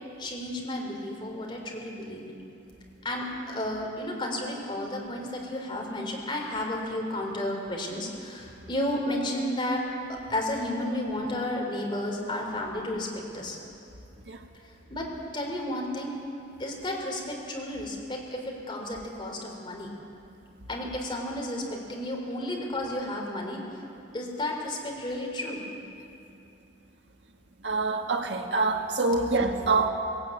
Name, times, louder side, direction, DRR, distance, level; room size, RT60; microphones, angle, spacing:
voice 1, 0.2-2.2 3.0-9.8 10.1-13.1 13.3-13.6 14.9-15.1 15.3-16.1 16.6-19.9 20.7-23.6 24.1-25.6, left 1 dB, 25° left, 0 dB, 3.9 m, -32 dB
voice 2, 27.6-29.9, right 3 dB, 75° right, 3 dB, 1.7 m, -25 dB
19.5 x 17.5 x 8.7 m, 2.6 s
head